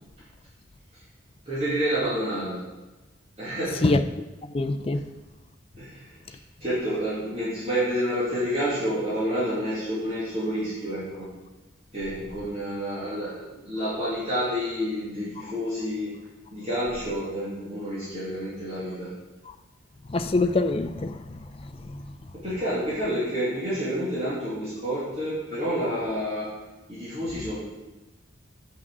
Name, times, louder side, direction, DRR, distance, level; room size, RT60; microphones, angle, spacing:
voice 1, 1.5-2.6 3.4-3.8 5.8-6.2 6.6-11.3 11.9-16.1 16.5-19.1 22.3-26.5 26.9-27.6, equal, 30° right, -9 dB, 2.2 m, -29 dB
voice 2, 4.5-5.0 20.1-21.4 21.9-22.0, left 2 dB, 30° left, 8 dB, 0.4 m, -24 dB
6.1 x 5.9 x 6.1 m, 1.1 s
head